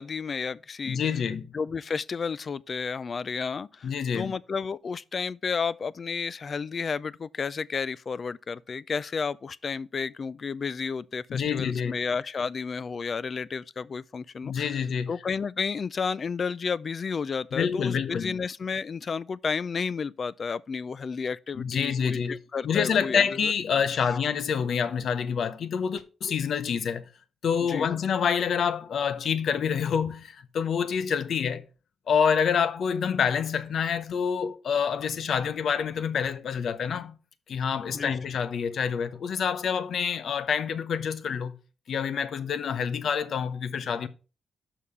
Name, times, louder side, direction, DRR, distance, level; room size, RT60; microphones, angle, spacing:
voice 1, 0.0-1.1 1.5-14.8 15.1-23.5 27.7-27.9 37.9-38.2, left 5 dB, 50° left, 0.4 m, -32 dB
voice 2, 0.9-1.5 3.8-4.3 11.3-12.0 14.4-15.1 17.5-18.4 21.6-22.4 22.6-27.1 27.4-31.6 32.1-37.2 37.5-41.5 41.9-44.1, left 7 dB, 70° left, 0.8 m, -27 dB
6.5 x 5.5 x 5.0 m
cardioid pair, 85°, 0 cm